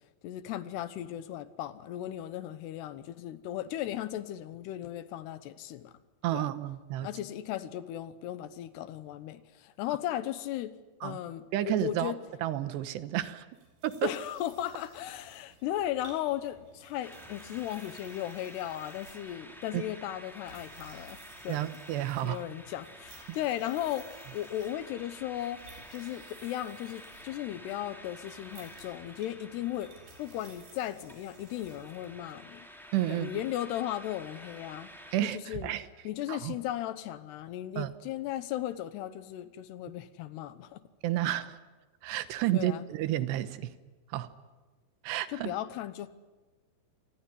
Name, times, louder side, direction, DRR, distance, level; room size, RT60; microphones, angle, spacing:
voice 1, 0.2-5.9 6.3-6.5 7.0-10.8 11.0-12.2 14.0-21.6 22.2-29.9 30.2-32.7 33.1-34.9 35.2-35.7 36.0-40.8 42.5-42.8 45.3-46.1, left 12 dB, 80° left, 3.1 m, -36 dB
voice 2, 6.2-7.1 11.0-11.2 11.5-12.1 12.4-13.5 13.8-14.1 19.7-19.8 21.5-22.4 23.3-23.4 32.9-33.3 35.1-35.9 36.3-36.5 37.8-37.9 41.0-41.6 42.0-43.7 44.1-44.3 45.0-45.5, right 13 dB, 90° right, 3.2 m, -31 dB
sound 1, 13.5-32.4, right 4 dB, 70° right, 6.3 m, -56 dB
sound 2, 17.0-35.2, equal, ahead, 3.0 m, -50 dB
26.5 x 20.0 x 9.9 m
omnidirectional pair, 4.8 m